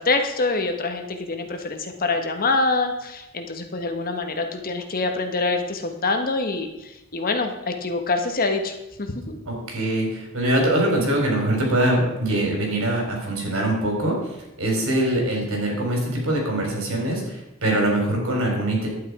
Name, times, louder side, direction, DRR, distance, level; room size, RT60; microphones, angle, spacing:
voice 1, 0.0-9.4, left 3 dB, 45° left, 5 dB, 1.3 m, -25 dB
voice 2, 9.5-14.1 14.6-18.9, right 1 dB, 70° right, 0 dB, 4.0 m, -23 dB
11.0 x 9.1 x 4.9 m, 0.92 s
head